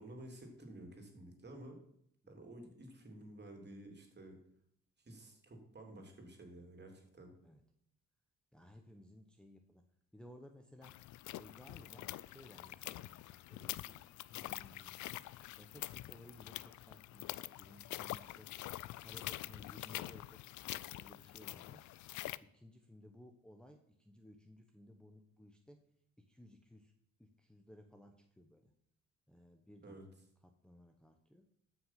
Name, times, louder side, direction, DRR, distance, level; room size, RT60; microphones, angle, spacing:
voice 1, 0.0-1.8 2.3-4.4 5.0-7.3 29.8-30.0, right 1 dB, 35° right, 3 dB, 3.1 m, -52 dB
voice 2, 8.5-9.8 10.1-11.0 11.3-13.1 13.5-14.0 14.3-15.0 15.6-18.5 19.0-21.9 22.4-25.8 26.2-26.9 27.2-28.7 29.3-30.0 30.4-31.5, left 1 dB, 5° left, 4 dB, 1.0 m, -59 dB
sound 1, 10.8-22.4, left 16 dB, 75° left, 0.5 m, -46 dB
13.0 x 6.1 x 5.8 m, 0.72 s
cardioid pair, 90°, 30 cm